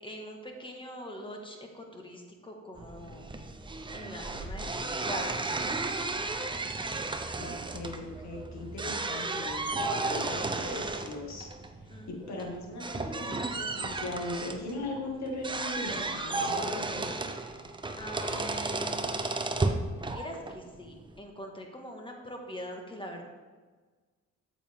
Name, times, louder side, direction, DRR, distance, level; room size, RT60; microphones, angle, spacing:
voice 1, 0.0-3.3 3.9-5.5 11.9-12.5 17.9-19.1 20.1-23.2, equal, 15° left, 2 dB, 1.7 m, -42 dB
sound 1, 2.8-21.2, right 3 dB, 15° right, 0.7 m, -34 dB
voice 2, 7.4-11.5 12.1-17.1, left 2 dB, 65° left, 0 dB, 2.1 m, -39 dB
8.7 x 7.5 x 3.7 m, 1.4 s
cardioid pair, 90°, 30 cm